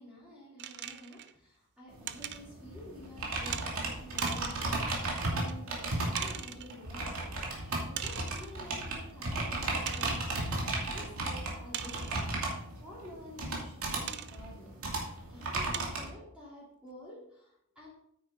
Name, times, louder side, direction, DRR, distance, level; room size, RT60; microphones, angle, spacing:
voice 1, 0.0-12.6 12.8-17.9, left 1 dB, 5° right, -8 dB, 3.3 m, -50 dB
sound 1, 0.6-1.3 2.1-2.4 3.5-3.7 4.2-4.7 5.5-5.6 6.1-6.7 7.9-8.6 9.1-9.2 9.9-10.3 11.7-12.3 14.1-14.4 15.0-15.1 15.7-16.1, right 10 dB, 55° right, 0.5 m, -40 dB
sound 2, 1.9-16.1, right 2 dB, 80° right, 2.5 m, -35 dB
9.2 x 9.2 x 3.8 m, 0.73 s
head